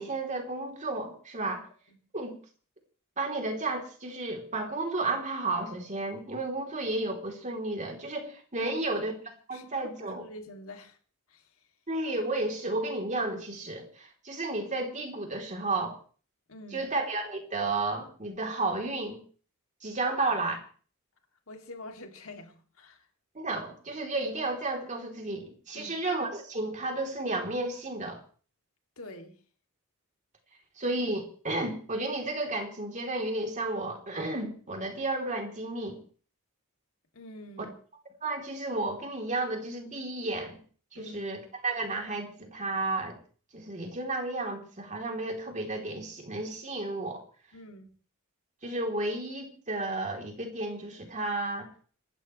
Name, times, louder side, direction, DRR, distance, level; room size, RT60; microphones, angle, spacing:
voice 1, 0.0-1.6 2.1-2.4 3.2-9.1 9.5-10.2 11.9-16.0 16.7-19.2 19.8-20.6 23.3-28.2 30.8-36.0 38.2-40.6 40.9-43.2 43.5-47.2 48.6-51.7, right 2 dB, 35° right, 3.4 m, -32 dB
voice 2, 8.6-9.0 9.5-11.0 11.3-11.7 16.5-16.9 20.0-20.4 21.5-23.1 25.7-25.9 29.0-29.4 37.1-37.7 40.9-41.2 47.5-47.9, left 1 dB, 75° left, 2.7 m, -46 dB
26.5 x 12.5 x 3.3 m
head